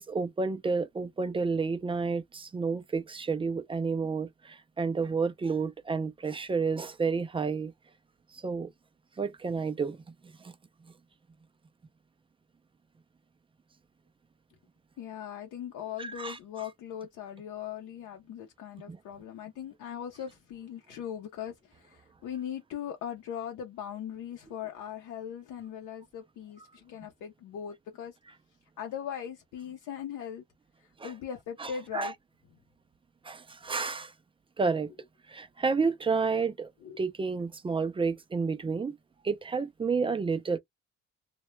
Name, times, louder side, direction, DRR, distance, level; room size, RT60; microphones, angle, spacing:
voice 1, 0.0-7.7 8.3-8.7 9.2-10.0 10.4-10.5 16.0-16.4 18.9-19.0 31.0-31.1 31.6-32.1 33.2-34.1 34.6-34.9 35.3-36.7 37.0-39.0 39.2-40.6, right 4 dB, 20° right, 0.3 m, -30 dB
voice 2, 15.0-28.1 28.8-30.4 31.0-32.1 36.2-36.3 36.8-37.0, left 9 dB, 80° left, 0.6 m, -40 dB
2.2 x 2.1 x 3.0 m
cardioid pair, 90°, 30 cm